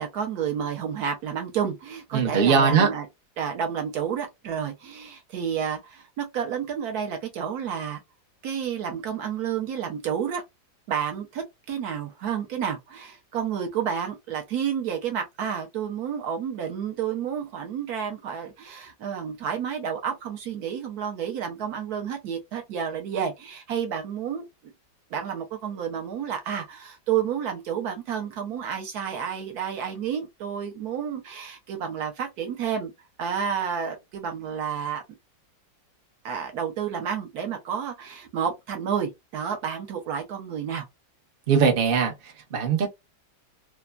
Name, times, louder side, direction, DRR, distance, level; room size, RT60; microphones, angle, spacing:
voice 1, 0.0-3.1 3.4-8.0 8.4-10.4 10.9-24.4 25.1-32.9 33.2-35.0 36.2-40.9, right 8 dB, 65° right, 1.1 m, -30 dB
voice 2, 2.1-2.9 41.5-42.1 42.5-42.9, right 6 dB, 50° right, 0.6 m, -20 dB
3.3 x 2.0 x 2.2 m
omnidirectional pair, 1.9 m